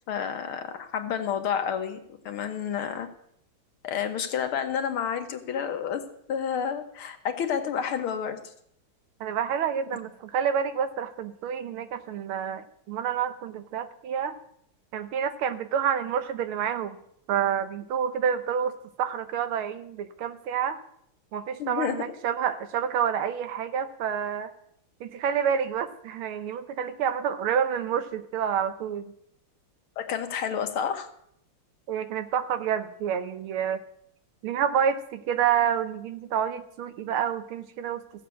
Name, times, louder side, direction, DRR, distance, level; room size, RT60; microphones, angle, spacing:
voice 1, 0.1-2.0 2.3-3.1 3.8-6.0 6.3-8.4 21.6-22.0 30.0-31.1, left 8 dB, 80° left, 7 dB, 1.9 m, -30 dB
voice 2, 9.2-14.4 14.9-17.0 17.3-20.8 21.3-24.5 25.0-29.1 31.9-33.8 34.4-38.0, right 8 dB, 80° right, 10 dB, 1.8 m, -28 dB
15.0 x 7.5 x 8.2 m, 0.71 s
omnidirectional pair, 2.4 m